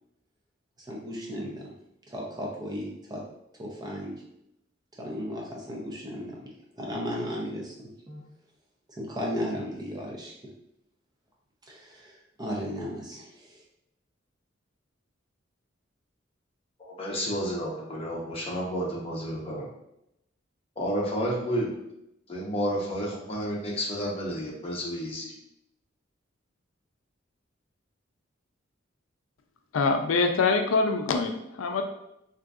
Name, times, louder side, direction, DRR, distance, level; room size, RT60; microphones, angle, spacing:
voice 1, 0.8-1.7 2.1-3.2 3.5-4.1 5.0-6.4 6.8-8.2 9.0-10.3 11.7-13.6, equal, 20° right, -2 dB, 0.6 m, -35 dB
voice 2, 16.8-19.7 20.8-21.7 22.3-25.3, equal, 30° left, -4 dB, 0.8 m, -31 dB
voice 3, 29.7-31.9, left 4 dB, 90° left, 5 dB, 0.4 m, -24 dB
3.6 x 2.6 x 2.4 m, 0.81 s
head